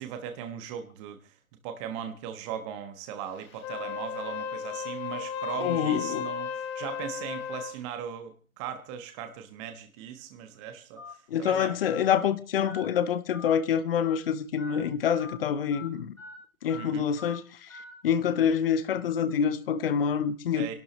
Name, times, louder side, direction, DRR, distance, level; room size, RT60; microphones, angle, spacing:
voice 1, 0.0-1.3 1.6-11.8 16.7-17.1 20.5-20.7, right 9 dB, 20° right, 1.2 m, -39 dB
Wind instrument woodwind instrument, 3.5-7.8, left 7 dB, 20° left, 0.9 m, -35 dB
voice 2, 5.6-6.3 11.3-16.1 16.6-17.7 18.0-20.7, left 8 dB, 45° left, 1.1 m, -26 dB
Telephone, 11.0-11.1 11.8-12.0 12.7-12.8 13.3-13.5 14.0-14.2 14.6-14.8 15.2-15.4 15.7-15.9 16.2-16.3 16.7-16.9 17.2-17.4 17.7-17.9, left 5 dB, 70° left, 4.6 m, -43 dB
29.0 x 12.0 x 3.1 m
figure-of-eight pair, 135°, 41 cm